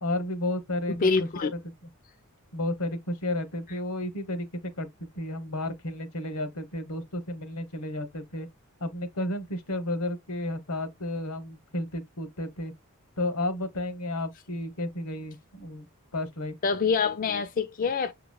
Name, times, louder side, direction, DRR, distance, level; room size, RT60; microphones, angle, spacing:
voice 1, 0.0-1.7 2.5-8.5 8.8-12.7 13.2-15.9 16.1-16.5, left 1 dB, 85° left, 1.0 m, -32 dB
voice 2, 0.9-1.5 16.6-18.1, left 5 dB, 40° left, 0.4 m, -25 dB
6.8 x 2.9 x 2.3 m
head